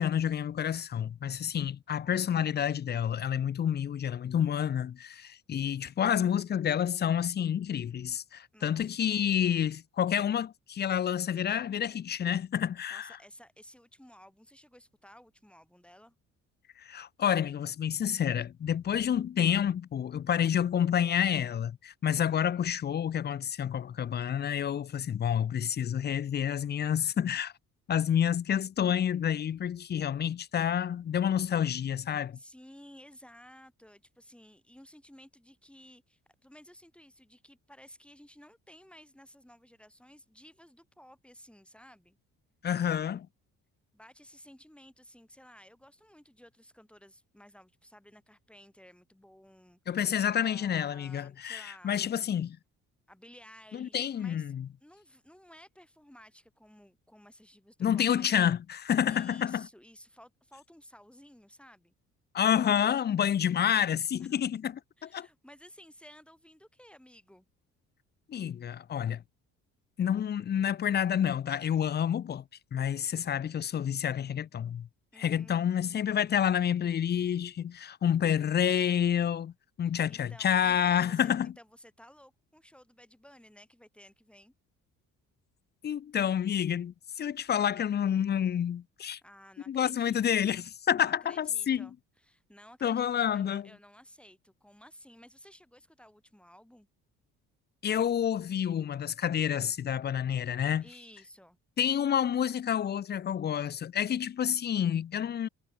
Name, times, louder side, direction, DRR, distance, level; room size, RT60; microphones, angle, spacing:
voice 1, 0.0-13.1 16.8-27.5 27.9-32.4 42.6-43.3 49.9-52.6 53.7-54.7 57.8-59.7 62.3-64.7 65.0-65.3 68.3-69.2 70.0-72.4 72.7-74.9 75.2-79.5 79.8-81.5 85.8-89.2 89.7-91.9 92.8-93.7 97.8-100.8 101.8-105.5, left 9 dB, 35° left, 0.5 m, -29 dB
voice 2, 8.5-9.0 12.9-16.2 32.3-42.2 43.9-52.0 53.1-58.4 59.1-61.9 64.2-64.4 65.0-67.5 75.1-76.2 80.1-81.3 81.6-84.5 89.2-90.4 91.0-96.9 100.8-101.6, equal, 5° left, 6.6 m, -55 dB
cardioid pair, 85°, 31 cm